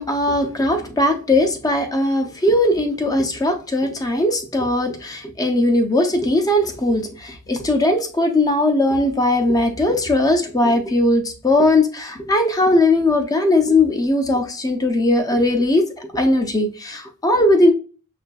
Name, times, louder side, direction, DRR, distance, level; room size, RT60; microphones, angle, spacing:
voice 1, 0.0-17.7, left 1 dB, 15° left, 4 dB, 0.5 m, -19 dB
6.3 x 2.5 x 2.3 m, 0.38 s
head